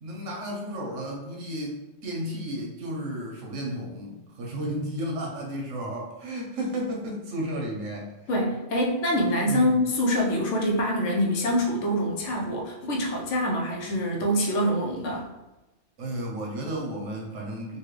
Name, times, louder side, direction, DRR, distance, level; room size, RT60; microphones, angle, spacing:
voice 1, 0.0-8.1 9.5-9.7 16.0-17.8, right 1 dB, 85° right, -1 dB, 1.2 m, -33 dB
voice 2, 8.3-15.3, equal, 90° left, -1 dB, 1.1 m, -25 dB
4.1 x 2.3 x 3.2 m, 1.0 s
omnidirectional pair, 1.2 m